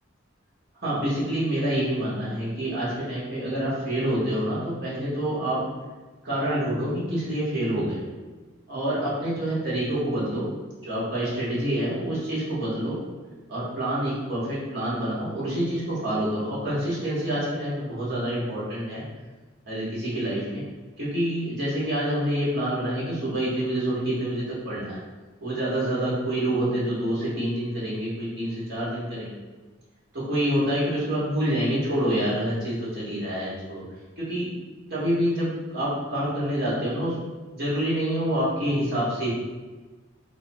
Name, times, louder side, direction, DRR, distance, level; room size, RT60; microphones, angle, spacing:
voice 1, 0.8-5.6 6.2-8.0 8.7-10.5 10.8-13.0 13.5-19.0 19.7-20.6 21.0-25.0 25.4-29.3 30.1-33.8 34.2-34.5 34.9-37.2 37.5-39.3, right 1 dB, 50° right, -9 dB, 1.5 m, -27 dB
3.2 x 3.0 x 2.9 m, 1.3 s
head